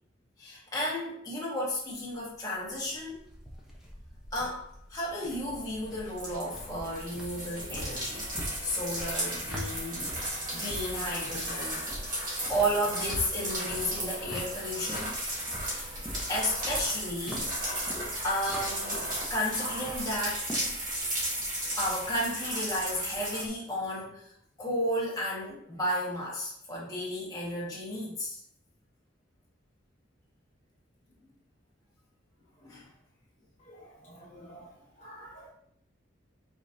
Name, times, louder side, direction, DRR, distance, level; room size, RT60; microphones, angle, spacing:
voice 1, 0.4-3.3 4.3-4.6 4.9-8.3 8.6-10.0 10.5-15.1 15.6-15.9 16.3-17.5 18.2-20.6 21.8-24.3 24.6-28.4 32.6-32.9, equal, 20° left, -6 dB, 1.3 m, -33 dB
sound 1, 2.0-21.0, equal, ahead, 0.7 m, -44 dB
sound 2, 5.4-23.4, right 1 dB, 40° right, 1.5 m, -35 dB
voice 2, 33.7-34.7 35.0-35.5, right 1 dB, 35° left, -7 dB, 0.8 m, -49 dB
5.0 x 4.0 x 2.6 m, 0.69 s
head